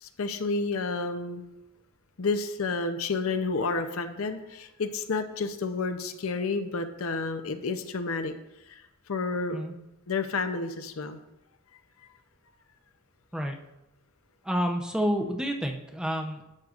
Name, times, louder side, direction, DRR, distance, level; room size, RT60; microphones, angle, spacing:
voice 1, 0.0-1.4 2.2-8.3 8.7-8.8 9.1-9.7 10.1-11.2, left 3 dB, 65° left, 8 dB, 0.6 m, -30 dB
voice 2, 14.4-16.4, equal, 5° right, 2 dB, 0.6 m, -29 dB
11.5 x 7.7 x 2.5 m, 0.93 s
head